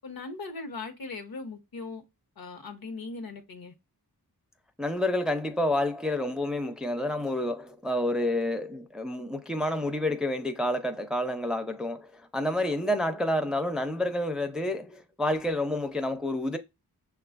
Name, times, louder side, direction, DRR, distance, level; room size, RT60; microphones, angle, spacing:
voice 1, 0.0-2.0 2.4-3.7, left 3 dB, 70° left, 0.9 m, -39 dB
voice 2, 4.8-16.6, left 1 dB, ahead, 0.4 m, -29 dB
6.1 x 2.3 x 2.4 m
wide cardioid pair, 95°, 37 cm